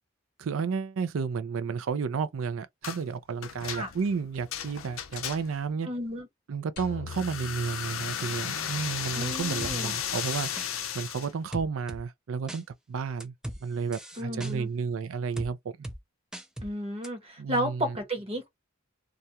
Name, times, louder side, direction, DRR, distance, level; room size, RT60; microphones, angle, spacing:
voice 1, 0.4-5.9 6.5-10.5 10.9-13.3 13.6-15.7 17.4-18.0, right 5 dB, 75° right, 0.4 m, -32 dB
sound 1, 2.8-3.0 3.4-5.7 7.1-11.3, left 9 dB, 70° left, 0.5 m, -35 dB
voice 2, 5.8-6.3 9.1-9.9 14.2-14.7 16.6-18.5, equal, 30° right, 0.9 m, -33 dB
sound 2, 6.8-9.0, left 5 dB, 50° left, 0.9 m, -44 dB
sound 3, 9.6-9.8 10.3-10.7 11.5-12.0 12.5-12.6 13.2-13.6 13.9-14.5 15.4-15.5 15.8-16.0 16.3-16.7 17.0-17.1, right 1 dB, 5° right, 0.3 m, -38 dB
2.4 x 2.2 x 2.7 m
head